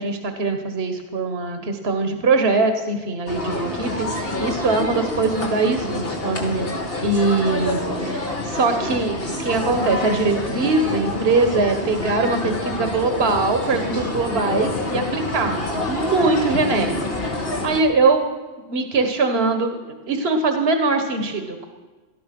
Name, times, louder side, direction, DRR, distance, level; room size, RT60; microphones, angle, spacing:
voice 1, 0.0-6.7 7.0-15.6 15.9-18.2 18.7-19.8 20.1-21.6, right 3 dB, 65° right, 6 dB, 1.6 m, -22 dB
sound 1, 3.3-17.8, left 2 dB, 60° left, 2.4 m, -27 dB
18.5 x 13.0 x 6.0 m, 1.3 s
omnidirectional pair, 1.1 m